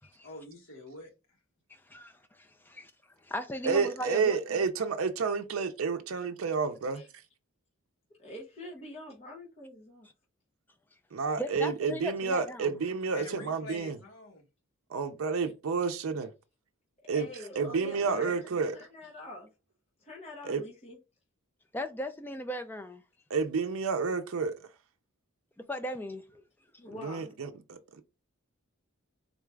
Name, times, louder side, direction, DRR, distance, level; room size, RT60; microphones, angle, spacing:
voice 1, 0.2-1.1 13.1-14.4 17.4-18.4, left 2 dB, 65° left, 1.5 m, -47 dB
voice 2, 1.7-2.9 3.2-4.4 11.4-12.7 21.7-23.0 25.7-26.2, equal, 10° left, 0.4 m, -37 dB
voice 3, 3.6-7.0 11.1-14.0 14.9-16.3 17.1-17.3 17.6-18.8 20.4-20.6 23.3-24.7 27.0-28.0, right 5 dB, 75° right, 0.5 m, -30 dB
voice 4, 8.2-10.1 15.4-15.5 17.1-19.5 20.0-21.0 26.3-26.4 26.8-27.3, left 1 dB, 30° left, 0.9 m, -46 dB
3.9 x 2.3 x 3.3 m
head